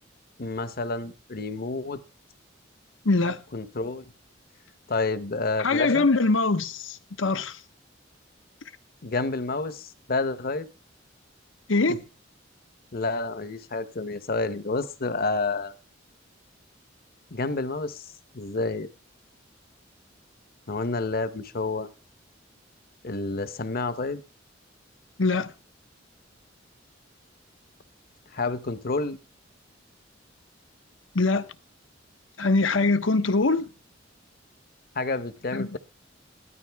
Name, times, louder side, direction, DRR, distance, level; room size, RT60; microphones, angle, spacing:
voice 1, 0.4-2.0 3.5-4.1 4.9-6.1 9.0-10.7 11.9-12.0 12.9-15.7 17.3-18.1 18.3-18.9 20.7-21.9 23.0-24.2 28.3-29.2 34.9-35.8, left 3 dB, 50° left, 1.0 m, -29 dB
voice 2, 3.0-3.4 5.6-7.6 11.7-12.0 25.2-25.5 31.1-31.5 32.4-33.7 35.5-35.8, left 3 dB, 80° left, 1.0 m, -23 dB
16.5 x 12.5 x 3.5 m
head